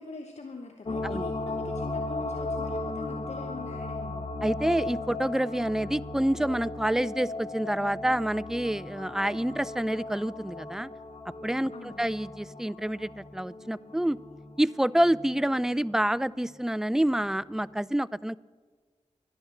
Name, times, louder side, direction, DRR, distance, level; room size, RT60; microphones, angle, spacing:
voice 1, 0.0-4.3 11.7-12.1, left 3 dB, 65° left, 4 dB, 1.1 m, -43 dB
sound 1, 0.9-16.6 16.9-17.0, left 2 dB, 50° left, 1.5 m, -37 dB
voice 2, 4.4-10.9 11.4-14.2 14.6-18.4, right 1 dB, 5° right, 19 dB, 0.3 m, -27 dB
11.5 x 11.5 x 7.2 m, 1.5 s
cardioid pair, 50°, 12 cm